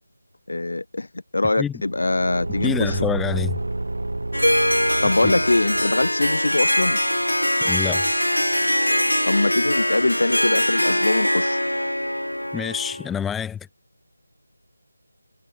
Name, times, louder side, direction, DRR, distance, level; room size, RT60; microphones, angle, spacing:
voice 1, 0.5-1.1 1.3-3.0 5.0-7.0 9.2-11.6, left 2 dB, 65° left, 5.7 m, -23 dB
Car / Engine, 1.8-6.3, right 2 dB, 65° right, 7.4 m, -29 dB
voice 2, 2.6-3.6 5.2-5.3 7.6-8.0 12.5-13.6, left 8 dB, 5° left, 3.9 m, -27 dB
Harp, 4.3-13.1, left 1 dB, 90° left, 5.2 m, -22 dB
figure-of-eight pair, 160°, 0 cm